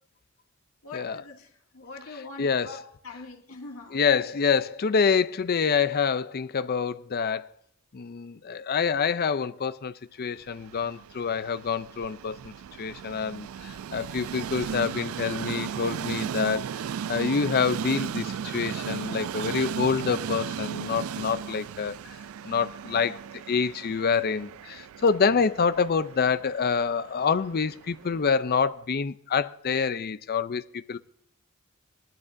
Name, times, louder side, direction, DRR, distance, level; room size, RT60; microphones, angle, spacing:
voice 1, 0.8-4.0, left 3 dB, 75° left, 2.3 m, -43 dB
voice 2, 2.4-2.7 3.9-7.5 7.9-12.5 12.8-16.7 17.1-22.0 22.4-23.2 23.5-31.0, left 5 dB, 45° left, 0.5 m, -26 dB
Train, 10.5-28.5, right 8 dB, 75° right, 0.3 m, -36 dB
19.5 x 12.0 x 2.6 m
head